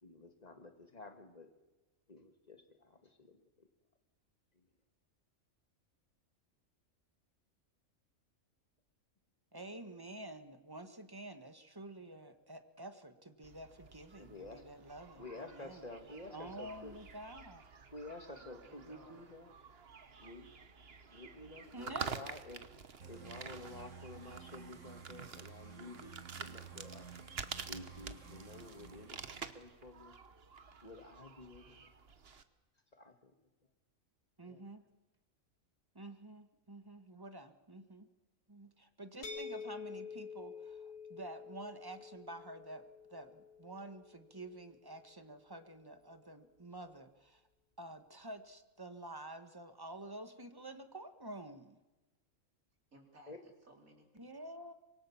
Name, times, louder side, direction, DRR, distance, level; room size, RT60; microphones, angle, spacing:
voice 1, 0.0-1.5 2.1-3.7 4.5-4.7 14.2-14.6 15.2-17.0 17.9-19.5 20.2-20.5 21.1-22.6 23.1-27.1 27.6-29.2 29.5-30.2 30.8-31.9 33.0-33.3 34.4-34.6 53.3-53.4, left 2 dB, 30° left, 6 dB, 2.2 m, -51 dB
voice 2, 9.5-15.8 16.3-17.6 21.7-22.1 34.4-34.9 35.9-38.1 38.5-47.4 47.8-51.8 54.1-54.7, right 1 dB, 15° right, 8 dB, 1.4 m, -49 dB
sound 1, 13.4-32.4, right 6 dB, 50° right, 1.3 m, -49 dB
voice 3, 16.0-17.0 18.4-19.3 23.0-23.2 52.9-54.5, right 2 dB, 85° right, 2 dB, 4.3 m, -62 dB
sound 2, 23.0-29.5, right 7 dB, 65° right, 2.3 m, -53 dB
sound 3, 39.2-45.0, left 5 dB, 75° left, 2.2 m, -49 dB
25.5 x 23.0 x 7.2 m, 1.1 s
omnidirectional pair, 1.4 m